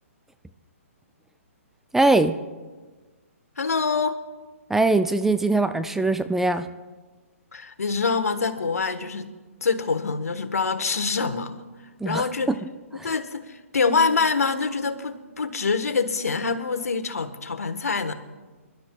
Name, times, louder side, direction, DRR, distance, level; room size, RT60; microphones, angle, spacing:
voice 1, 1.9-2.3 4.7-6.7 12.0-12.6 12.9-13.1, right 2 dB, 5° right, 10 dB, 0.3 m, -22 dB
voice 2, 3.6-4.2 7.5-9.3 9.6-11.5 12.0-12.5 13.0-18.1, left 4 dB, 90° left, 9 dB, 1.2 m, -25 dB
26.5 x 12.0 x 2.3 m, 1.3 s
hypercardioid pair, 140°, 8 cm